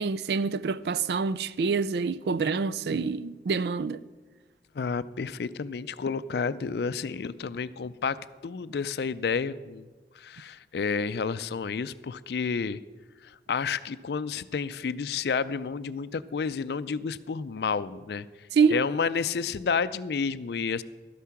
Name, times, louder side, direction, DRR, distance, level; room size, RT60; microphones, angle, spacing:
voice 1, 0.0-4.0 18.5-18.8, right 5 dB, 65° right, 0.4 m, -26 dB
voice 2, 4.8-8.2 8.4-9.9 10.2-12.8 13.5-18.3 18.7-20.8, left 5 dB, 65° left, 0.4 m, -30 dB
12.5 x 8.3 x 5.8 m
head